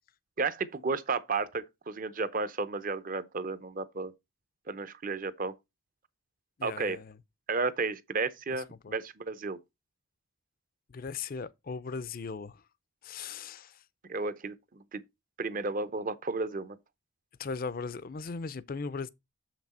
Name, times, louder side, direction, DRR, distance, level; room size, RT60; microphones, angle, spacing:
voice 1, 0.4-4.1 4.7-5.5 6.6-7.0 7.5-9.6 14.1-15.0 15.4-16.8, right 4 dB, 40° right, 0.7 m, -33 dB
voice 2, 6.6-7.2 8.5-8.9 10.9-12.6 13.0-13.8 17.4-19.1, left 4 dB, 40° left, 0.5 m, -38 dB
7.1 x 6.0 x 4.2 m
head